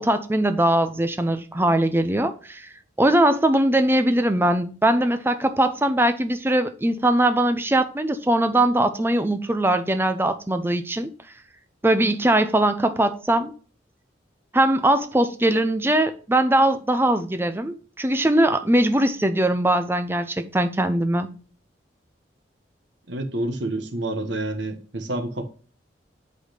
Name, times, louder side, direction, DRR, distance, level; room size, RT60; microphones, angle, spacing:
voice 1, 0.0-2.7 3.0-11.1 11.8-13.5 14.5-21.3, right 1 dB, 10° right, 0.6 m, -21 dB
voice 2, 23.1-25.5, right 2 dB, 70° right, 1.3 m, -28 dB
8.0 x 4.2 x 5.1 m
head